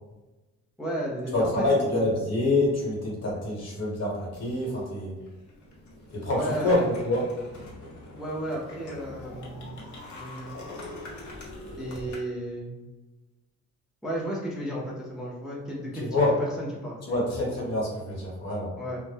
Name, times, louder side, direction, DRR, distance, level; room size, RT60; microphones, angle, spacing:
voice 1, 0.8-1.6 6.3-6.9 8.1-9.8 10.1-10.5 11.8-12.7 14.0-17.2 18.8-19.0, equal, ahead, -4 dB, 0.5 m, -33 dB
voice 2, 1.3-5.1 6.1-7.3 16.1-16.3 17.1-18.7, left 2 dB, 55° left, -4 dB, 1.2 m, -26 dB
sound 1, 4.3-4.8 5.2-12.2, left 2 dB, 75° left, 0.8 m, -43 dB
2.0 x 2.0 x 3.2 m, 1.1 s
cardioid pair, 90°, 30 cm